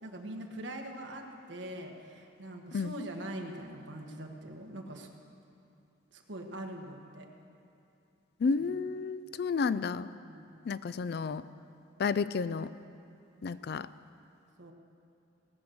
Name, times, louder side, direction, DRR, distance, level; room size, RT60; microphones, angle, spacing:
voice 1, 0.0-5.1 6.1-7.3 8.6-8.8 10.2-10.6 14.6-14.7, right 1 dB, 70° right, 3 dB, 1.3 m, -43 dB
voice 2, 8.4-10.1 10.7-11.4 12.0-12.7 13.4-13.9, left 5 dB, 55° left, 15 dB, 0.4 m, -31 dB
18.5 x 6.4 x 7.8 m, 2.6 s
head